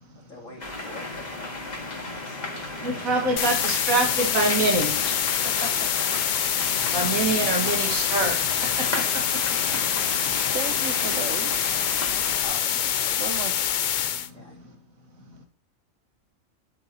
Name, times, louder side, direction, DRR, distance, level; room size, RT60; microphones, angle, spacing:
voice 1, 0.3-1.3 2.7-3.2 12.4-13.4 14.3-14.6, left 1 dB, 65° left, -1 dB, 2.9 m, -43 dB
sound 1, 0.6-12.4, left 2 dB, 30° left, 1.9 m, -34 dB
voice 2, 2.8-4.9 5.4-6.1 6.9-9.4, right 2 dB, 85° right, 2 dB, 2.2 m, -26 dB
sound 2, 3.4-14.3, left 9 dB, 85° left, 0.4 m, -25 dB
sound 3, 6.4-12.9, right 1 dB, 50° right, 3.5 m, -43 dB
voice 3, 10.5-11.6 13.2-13.5, right 7 dB, 65° right, 10 dB, 1.2 m, -33 dB
11.0 x 7.7 x 2.9 m, 0.37 s
omnidirectional pair, 1.4 m